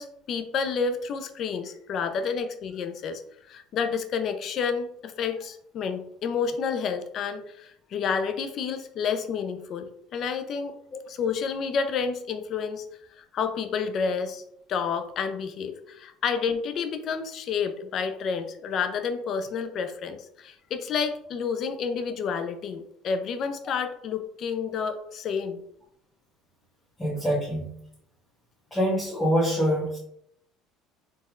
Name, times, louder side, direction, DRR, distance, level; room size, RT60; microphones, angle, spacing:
voice 1, 0.0-3.2 3.5-10.8 11.1-12.9 13.2-14.4 14.7-25.6, left 6 dB, 55° left, 8 dB, 0.5 m, -30 dB
voice 2, 27.0-27.7 28.7-30.0, equal, 15° left, -8 dB, 1.5 m, -25 dB
4.3 x 3.4 x 2.4 m, 0.73 s
hypercardioid pair, 75°, 0 cm